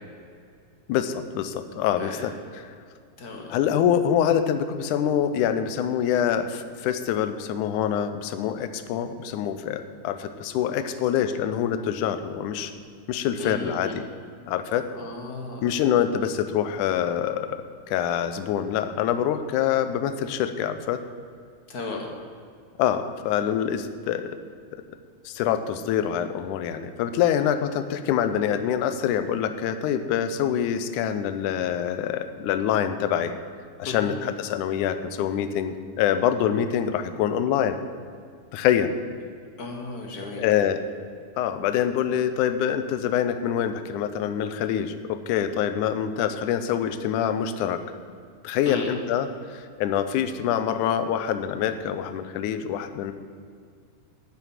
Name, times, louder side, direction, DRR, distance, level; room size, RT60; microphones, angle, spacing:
voice 1, 0.9-2.3 3.5-12.7 13.1-14.0 14.5-14.8 15.6-21.0 22.8-24.4 24.7-24.8 25.3-33.3 33.8-37.8 38.5-38.9 40.4-40.8 41.4-47.8 48.4-53.1, left 9 dB, 80° left, 10 dB, 2.1 m, -25 dB
voice 2, 3.2-3.5 13.4-13.9 15.0-16.1 21.7-22.1 33.8-34.2 39.6-40.5 48.6-48.9, left 3 dB, 60° left, 1 dB, 0.9 m, -35 dB
10.0 x 8.1 x 7.4 m, 2.2 s
omnidirectional pair, 3.6 m